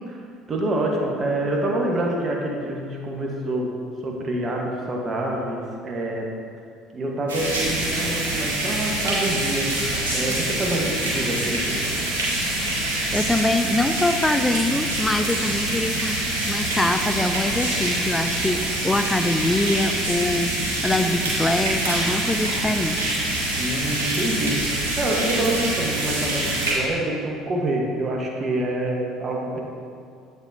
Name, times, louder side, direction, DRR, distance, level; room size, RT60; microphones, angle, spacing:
voice 1, 0.5-3.8 4.0-6.3 6.9-11.9 23.5-29.6, right 1 dB, 40° right, -1 dB, 1.2 m, -26 dB
sound 1, 7.3-26.7, right 1 dB, 85° right, 1.3 m, -25 dB
voice 2, 13.1-16.2 16.4-20.5 20.8-23.0, left 2 dB, 15° left, 8 dB, 0.5 m, -24 dB
8.0 x 6.6 x 2.7 m, 2.2 s
hypercardioid pair, 60°, 0 cm